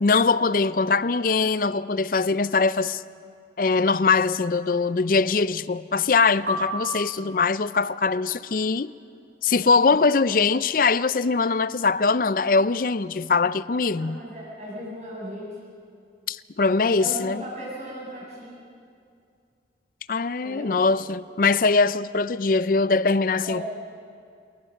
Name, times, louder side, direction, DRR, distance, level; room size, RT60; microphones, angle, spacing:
voice 1, 0.0-3.0 3.6-8.9 9.4-14.2 16.3-17.4 20.1-23.6, left 4 dB, 50° left, 0.5 m, -22 dB
sound 1, 6.5-7.7, equal, 80° right, 2.1 m, -32 dB
voice 2, 9.5-10.0 13.8-15.5 17.0-18.5 20.4-20.8 23.4-23.6, equal, 40° right, 7.5 m, -37 dB
29.0 x 19.0 x 6.6 m
head